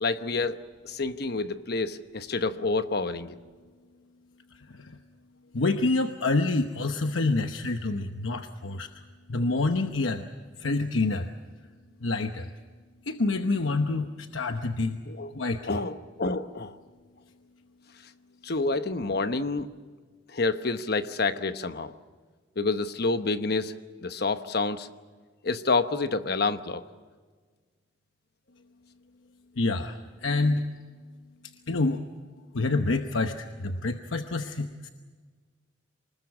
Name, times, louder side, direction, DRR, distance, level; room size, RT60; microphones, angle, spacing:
voice 1, 0.0-3.4 15.1-15.3 15.6-16.8 18.4-19.7 20.3-21.9 22.6-23.7 24.0-24.9 25.4-26.8, left 3 dB, 55° left, 10 dB, 1.0 m, -28 dB
voice 2, 5.5-8.9 9.3-10.2 10.6-11.3 12.0-12.5 13.0-15.0 15.3-15.6 29.6-30.7 31.7-32.0 32.5-34.9, left 3 dB, 85° left, 6 dB, 1.0 m, -27 dB
25.0 x 20.5 x 7.3 m, 1.5 s
head